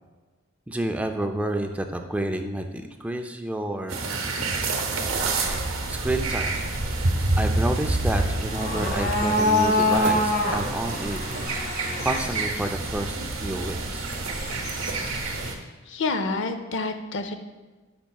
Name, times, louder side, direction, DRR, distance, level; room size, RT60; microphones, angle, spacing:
voice 1, 0.7-4.0 5.9-6.7 7.4-11.2 12.0-14.1, right 1 dB, 5° right, 5 dB, 0.4 m, -29 dB
sound 1, 3.9-15.5, right 2 dB, 75° right, 0.9 m, -28 dB
sound 2, 5.1-15.5, left 1 dB, 50° left, 1.3 m, -28 dB
voice 2, 15.2-15.6 15.9-17.4, left 3 dB, 65° left, 8 dB, 0.6 m, -29 dB
10.0 x 5.4 x 2.3 m, 1.2 s
head